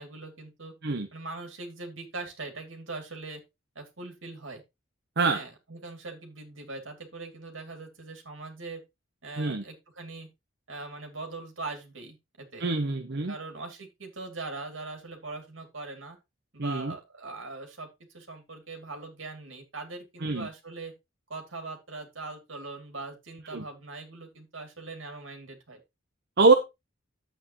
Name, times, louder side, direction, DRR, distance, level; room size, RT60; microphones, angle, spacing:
voice 1, 0.0-0.7 1.1-3.4 3.7-4.6 5.3-8.8 9.2-10.3 10.7-12.6 13.3-16.2 16.5-17.9 18.1-20.9 21.3-25.8, right 3 dB, 75° right, 4 dB, 2.7 m, -41 dB
voice 2, 12.6-13.3 16.6-16.9 20.2-20.5 23.5-23.6 26.4-26.5, right 3 dB, 60° right, 7 dB, 0.9 m, -24 dB
10.5 x 8.2 x 3.0 m, 0.23 s
head